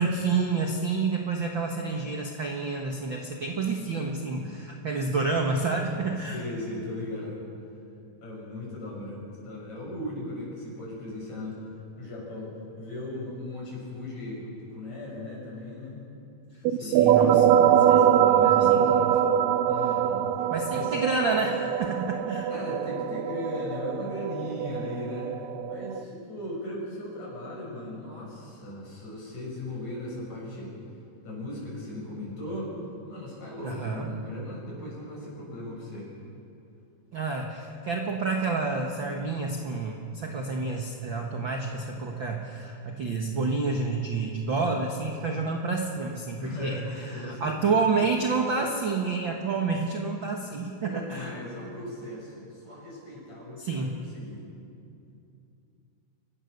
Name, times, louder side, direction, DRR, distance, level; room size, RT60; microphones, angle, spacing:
voice 1, 0.0-6.4 16.8-18.1 18.4-19.1 20.5-22.5 33.6-34.1 37.1-51.4 53.6-54.0, right 4 dB, 50° right, 1 dB, 1.5 m, -29 dB
voice 2, 6.3-7.4 8.2-11.5 12.0-16.0 16.7-17.6 17.9-18.9 19.7-20.3 20.7-21.0 22.5-25.4 25.7-30.7 31.2-32.7 33.1-36.1 46.4-47.9 50.8-54.4, left 1 dB, 55° left, -3 dB, 7.5 m, -37 dB
sound 1, 16.6-26.0, right 9 dB, 85° right, 2.4 m, -23 dB
29.0 x 16.5 x 6.6 m, 2.6 s
omnidirectional pair, 3.9 m